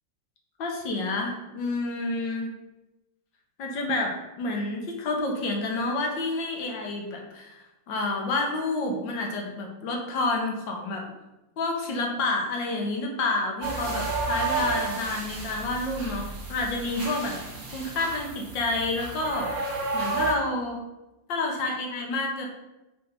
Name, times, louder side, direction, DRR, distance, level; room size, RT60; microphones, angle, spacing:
voice 1, 0.6-2.5 3.6-7.6 7.9-11.0 11.6-19.5 19.9-20.8 21.3-22.5, left 2 dB, 75° left, 1 dB, 1.7 m, -29 dB
sound 1, 13.6-20.3, right 3 dB, 55° right, 1.6 m, -32 dB
5.4 x 3.3 x 5.4 m, 0.98 s
omnidirectional pair, 2.0 m